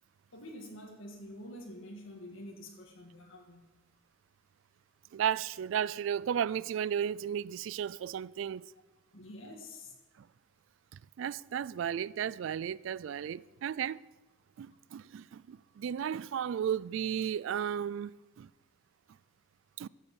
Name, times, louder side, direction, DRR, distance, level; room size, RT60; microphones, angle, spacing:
voice 1, 0.3-3.6 9.1-9.9, left 1 dB, 80° left, 1.7 m, -47 dB
voice 2, 5.1-8.7 10.2-10.3 11.2-14.0 14.6-18.5 19.8-19.9, right 8 dB, 75° right, 0.3 m, -34 dB
14.0 x 8.3 x 7.2 m
head